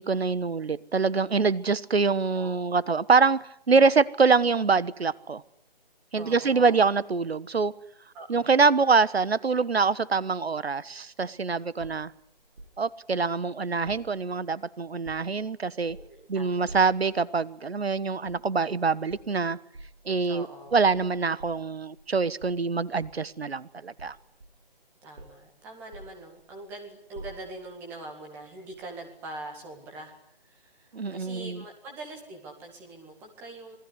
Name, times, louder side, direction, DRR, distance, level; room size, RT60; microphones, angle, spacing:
voice 1, 0.0-5.4 6.1-7.7 8.3-12.1 12.8-16.0 16.3-19.6 20.0-20.5 20.7-24.2 30.9-31.6, right 4 dB, 90° right, 18 dB, 1.3 m, -25 dB
voice 2, 6.1-6.8 8.1-8.6 15.9-16.8 20.3-20.8 25.0-30.1 30.4-33.8, right 2 dB, 5° right, 1 dB, 2.0 m, -43 dB
sound 1, 11.8-12.8 13.8-14.6 14.9-15.5 15.9-16.2 16.7-17.1 18.2-18.5 19.1-19.3 19.7-20.0 20.7-22.1 22.4-23.3 24.0-24.8 25.2-25.5 25.9-26.7 27.1-27.8 28.7-28.9, right 2 dB, 70° right, 7.8 m, -47 dB
27.0 x 20.5 x 9.7 m, 0.66 s
hypercardioid pair, 170°, 30 cm